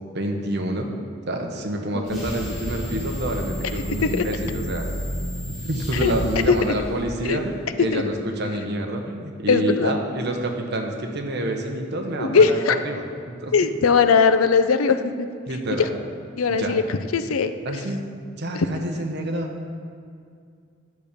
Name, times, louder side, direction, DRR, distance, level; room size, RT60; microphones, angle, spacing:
voice 1, 0.1-0.9 1.3-4.9 5.6-13.5 15.5-15.9 16.6-16.8 17.6-18.0 18.3-19.5, right 1 dB, 55° right, 2 dB, 1.0 m, -27 dB
voice 2, 1.9-2.3 4.0-4.2 5.9-6.1 6.5-6.7 7.2-7.4 7.9-8.0 9.5-9.9 12.2-12.8 13.5-15.3 15.8-15.9 16.4-17.5 18.5-18.7, left 5 dB, 80° left, 10 dB, 0.5 m, -20 dB
sound 1, 2.0-7.5, equal, ahead, 2.7 m, -31 dB
10.0 x 6.8 x 5.1 m, 2.3 s
head